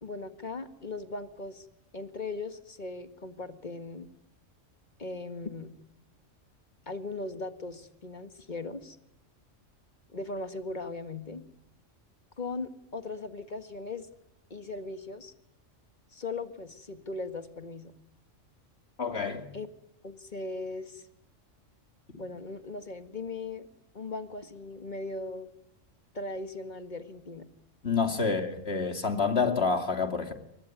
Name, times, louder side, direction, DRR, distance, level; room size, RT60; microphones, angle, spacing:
voice 1, 0.0-1.7 1.9-4.1 5.0-5.7 6.9-9.0 10.1-11.4 12.4-14.1 14.5-15.3 16.1-17.9 19.5-19.7 20.0-21.0 22.2-23.7 23.9-25.5 26.1-27.5, left 3 dB, 35° left, 1.9 m, -38 dB
voice 2, 19.0-19.5 27.8-30.3, left 4 dB, 55° left, 2.9 m, -28 dB
24.0 x 20.5 x 9.5 m
omnidirectional pair, 1.3 m